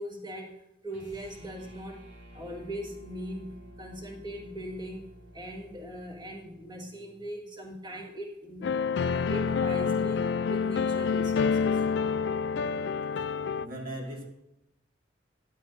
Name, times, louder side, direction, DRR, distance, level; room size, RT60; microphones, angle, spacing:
voice 1, 0.0-2.0 2.3-8.7 9.3-11.8, equal, 25° right, 1.7 m, -40 dB
sound 1, 0.9-7.3, right 1 dB, 75° right, 3.6 m, -51 dB
sound 2, 8.6-13.7, left 6 dB, 65° left, 0.3 m, -27 dB
voice 2, 13.6-14.3, right 1 dB, 50° right, 2.0 m, -40 dB
12.0 x 11.5 x 2.6 m
head